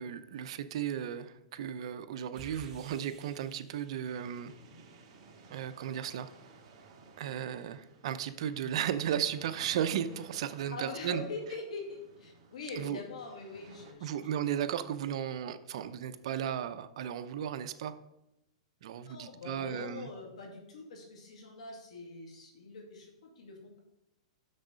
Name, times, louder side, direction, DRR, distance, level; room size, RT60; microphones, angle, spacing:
voice 1, 0.0-4.5 5.5-6.3 7.2-11.3 12.8-13.0 14.0-17.9 18.8-20.1, right 9 dB, 60° right, 10 dB, 0.6 m, -35 dB
sound 1, 2.3-5.1, right 4 dB, 20° right, 0.9 m, -54 dB
sound 2, 4.0-13.9, right 3 dB, 45° right, 1.6 m, -57 dB
voice 2, 10.7-14.3 19.1-23.8, left 3 dB, 85° left, 1 dB, 2.2 m, -43 dB
6.4 x 6.3 x 5.1 m, 0.87 s
hypercardioid pair, 150°, 3 cm